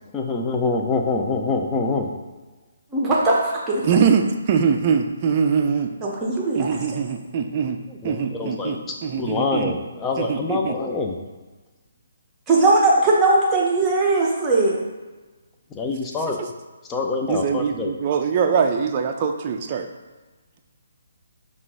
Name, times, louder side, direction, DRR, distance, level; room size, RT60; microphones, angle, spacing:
voice 1, 0.1-2.1 8.0-8.8 9.2-11.1 15.7-16.4 16.9-17.9, left 3 dB, 15° left, 1 dB, 0.5 m, -25 dB
voice 2, 2.9-3.9 6.0-6.7 12.5-14.8, right 2 dB, 15° right, -3 dB, 0.9 m, -19 dB
voice 3, 3.8-6.0 6.5-9.8 10.2-10.8 16.2-16.5 17.3-19.9, right 6 dB, 35° right, 4 dB, 0.4 m, -23 dB
5.7 x 2.5 x 3.5 m, 1.2 s
figure-of-eight pair, 140°, 0 cm